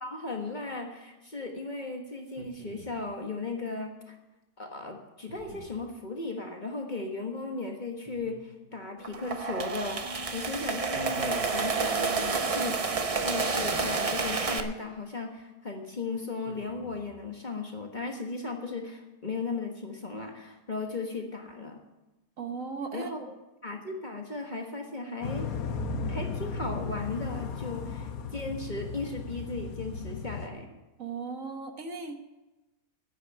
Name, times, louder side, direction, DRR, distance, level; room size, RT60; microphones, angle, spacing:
voice 1, 0.0-4.1 4.6-21.8 22.9-23.2 23.6-25.5 26.1-30.7, left 3 dB, 30° left, 2 dB, 1.4 m, -36 dB
sound 1, 2.2-3.1 5.3-5.9 8.1-8.8 10.9-11.8 13.6-14.6 16.4-17.2, right 2 dB, 85° right, 2.2 m, -49 dB
sound 2, 9.0-14.6, right 4 dB, 40° right, 0.5 m, -29 dB
voice 2, 22.4-23.3 31.0-32.2, right 4 dB, 55° right, 5 dB, 1.3 m, -37 dB
sound 3, 25.2-30.5, left 4 dB, 65° left, 1.3 m, -35 dB
10.0 x 9.1 x 8.7 m, 1.0 s
omnidirectional pair, 1.8 m